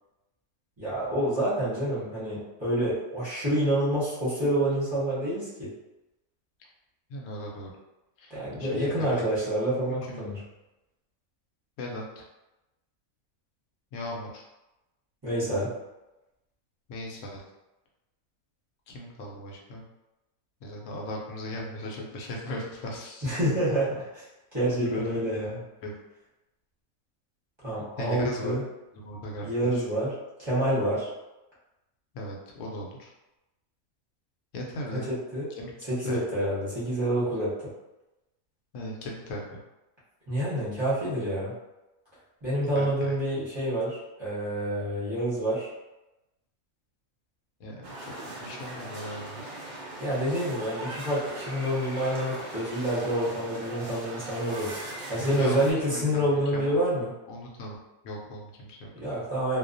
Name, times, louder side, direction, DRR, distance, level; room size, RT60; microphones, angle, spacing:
voice 1, 0.8-5.7 8.3-10.4 15.2-15.7 23.2-24.2 24.5-25.5 27.6-28.6 29.4-30.1 30.4-31.1 34.9-35.5 35.9-37.5 40.3-41.5 42.4-45.7 50.0-57.1 58.9-59.6, right 1 dB, 25° right, -11 dB, 0.7 m, -28 dB
voice 2, 7.1-7.7 8.2-8.3 8.6-9.2 10.1-10.3 11.8-12.3 13.9-14.5 16.9-17.4 18.9-19.8 20.6-23.3 24.7-25.9 28.0-28.5 28.9-29.9 32.1-33.1 34.5-35.1 35.6-35.7 36.0-36.2 38.7-39.6 42.7-43.2 47.6-49.5 55.2-56.8 57.3-57.8 58.0-58.9, left 1 dB, 70° left, -1 dB, 0.9 m, -38 dB
sound 1, 47.8-55.7, right 1 dB, 75° right, 0.4 m, -39 dB
2.3 x 2.1 x 2.5 m, 0.99 s
omnidirectional pair, 1.5 m